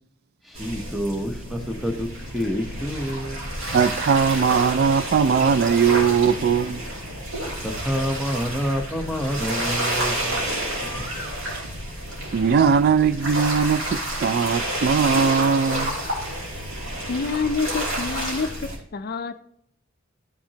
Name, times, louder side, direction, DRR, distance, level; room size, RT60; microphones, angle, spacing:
voice 1, 0.4-2.1 2.3-3.6 7.6-10.6 10.9-11.0, equal, ahead, 0.8 m, -28 dB
sound 1, 0.5-18.8, right 1 dB, 75° right, 2.9 m, -30 dB
voice 2, 3.7-6.8 12.3-15.9, right 6 dB, 50° right, 0.3 m, -20 dB
voice 3, 17.1-18.5 18.9-19.4, left 4 dB, 50° left, 0.5 m, -27 dB
12.5 x 5.9 x 2.8 m
head